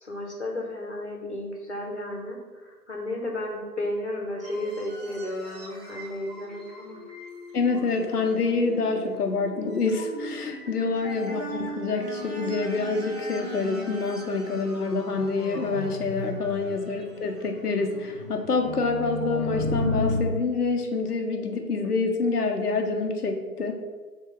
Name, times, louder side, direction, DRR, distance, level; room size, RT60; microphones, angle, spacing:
voice 1, 0.0-7.0 10.8-11.0, left 1 dB, 45° left, 1 dB, 1.1 m, -33 dB
sound 1, 4.4-20.2, left 2 dB, 25° right, 1.4 m, -36 dB
voice 2, 7.5-23.8, left 3 dB, 65° left, 3 dB, 0.8 m, -27 dB
6.0 x 3.2 x 5.0 m, 1.4 s
figure-of-eight pair, 180°, 49 cm